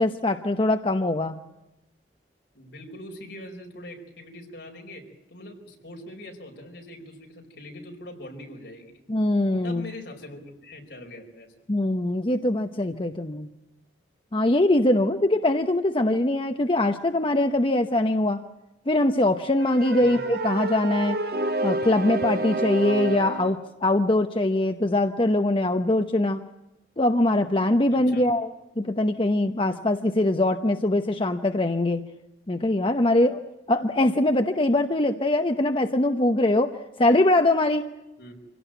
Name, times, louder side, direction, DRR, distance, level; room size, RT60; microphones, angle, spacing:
voice 1, 0.0-1.4 9.1-9.8 11.7-13.5 14.3-18.4 18.9-21.2 21.6-26.4 27.0-28.5 28.8-32.0 32.5-33.4 33.7-37.9, left 1 dB, 30° left, 7 dB, 0.8 m, -22 dB
voice 2, 2.5-8.9 9.6-11.5 20.0-20.2 27.9-28.3 38.2-38.4, left 1 dB, 70° left, 2 dB, 4.8 m, -42 dB
sound 1, 19.6-23.6, right 2 dB, 60° right, 1.3 m, -29 dB
25.5 x 17.5 x 9.2 m, 0.98 s
head